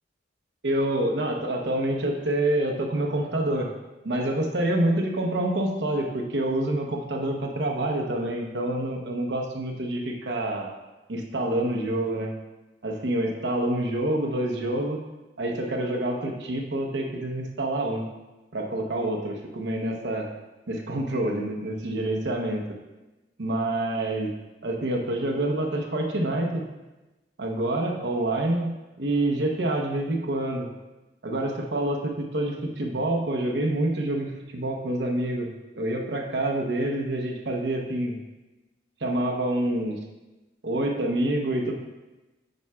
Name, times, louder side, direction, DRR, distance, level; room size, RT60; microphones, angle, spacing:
voice 1, 0.6-3.7 4.0-10.7 11.1-12.3 12.8-15.0 15.4-18.1 18.5-20.3 20.7-22.6 23.4-24.3 24.6-26.6 27.4-30.7 31.2-35.5 35.8-38.2 39.0-40.0 40.6-41.7, right 1 dB, 70° right, 1 dB, 0.9 m, -27 dB
7.8 x 5.6 x 2.3 m, 1.1 s
head